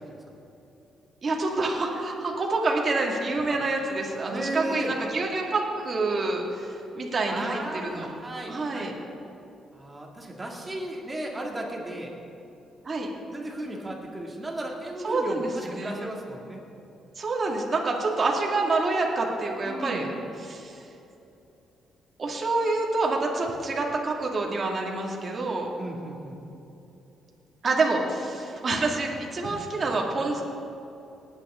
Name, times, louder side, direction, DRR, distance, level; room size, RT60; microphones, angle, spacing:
voice 1, 1.2-8.1 8.5-8.9 12.8-13.1 15.0-16.1 17.2-20.1 20.4-20.8 22.2-25.7 27.6-30.4, right 3 dB, 40° right, -1 dB, 2.2 m, -27 dB
voice 2, 4.3-4.9 7.3-9.0 9.7-12.1 13.3-16.6 19.6-20.1 25.8-26.4 29.9-30.0, right 1 dB, 20° right, -1 dB, 2.5 m, -35 dB
19.0 x 9.3 x 3.8 m, 2.9 s
cardioid pair, 90°, 0 cm